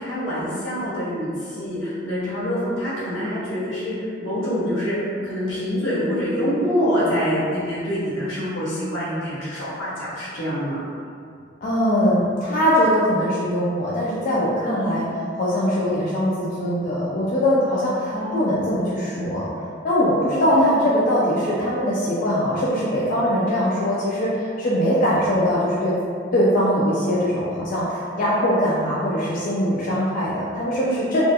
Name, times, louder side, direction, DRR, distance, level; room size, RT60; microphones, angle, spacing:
voice 1, 0.0-10.9 14.6-15.0 17.7-18.7 20.5-20.8 30.8-31.1, equal, 80° left, -9 dB, 1.0 m, -26 dB
voice 2, 11.6-15.0 15.4-19.4 19.8-25.9 26.3-31.2, equal, 45° left, -7 dB, 0.3 m, -21 dB
2.3 x 2.2 x 2.7 m, 2.3 s
head